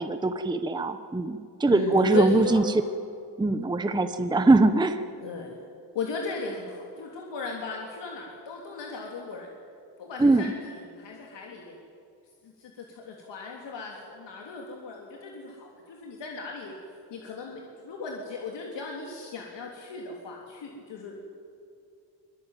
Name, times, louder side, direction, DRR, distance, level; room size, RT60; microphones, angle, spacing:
voice 1, 0.0-2.8 3.4-5.0 10.2-10.5, right 2 dB, 10° right, 9 dB, 0.8 m, -22 dB
voice 2, 1.7-2.7 5.2-5.6 6.0-9.5 10.0-11.8 12.4-16.7 17.1-21.3, left 4 dB, 75° left, 0 dB, 3.4 m, -36 dB
24.5 x 22.0 x 9.2 m, 2.4 s
wide cardioid pair, 165°, 44 cm